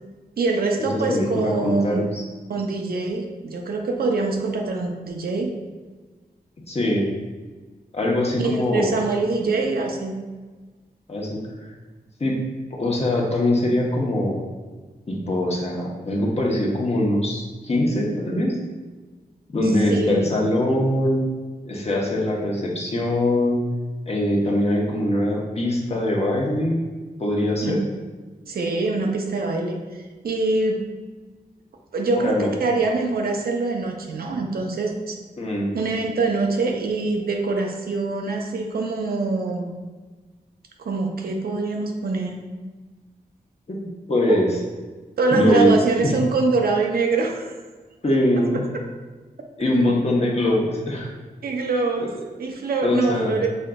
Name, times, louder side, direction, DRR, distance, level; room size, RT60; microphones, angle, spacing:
voice 1, 0.4-2.0 2.5-5.5 8.4-10.2 19.9-20.3 27.6-27.8 28.5-29.8 30.2-30.8 31.9-35.2 35.7-39.7 40.8-42.4 44.3-44.4 45.2-47.5 49.6-49.8 51.4-52.1 52.4-53.5, right 3 dB, 80° right, 2 dB, 0.6 m, -24 dB
voice 2, 0.9-2.2 6.7-7.1 7.9-8.9 11.1-11.7 12.2-12.4 12.7-14.4 15.1-18.5 19.5-21.2 21.6-23.6 24.1-26.8 27.2-27.8 32.1-32.5 35.4-35.7 43.7-44.5 45.3-45.7 46.0-46.1 48.0-48.6 49.6-51.1 52.0-52.1 52.8-53.4, left 1 dB, 40° left, -2 dB, 1.0 m, -22 dB
5.5 x 3.8 x 2.3 m, 1.3 s
wide cardioid pair, 95°, 16 cm